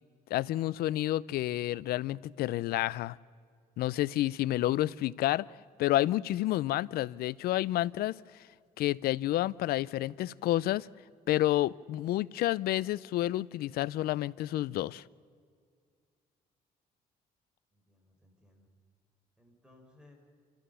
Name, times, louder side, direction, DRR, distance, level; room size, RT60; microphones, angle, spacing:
voice 1, 0.3-3.2 3.8-5.5 5.8-8.2 8.8-10.9 11.3-15.0, left 15 dB, 85° left, 22 dB, 0.4 m, -29 dB
voice 2, 17.7-18.7 19.4-20.1, left 2 dB, 5° right, 2 dB, 4.8 m, -61 dB
28.5 x 14.5 x 6.9 m, 2.1 s
cardioid pair, 105°, 16 cm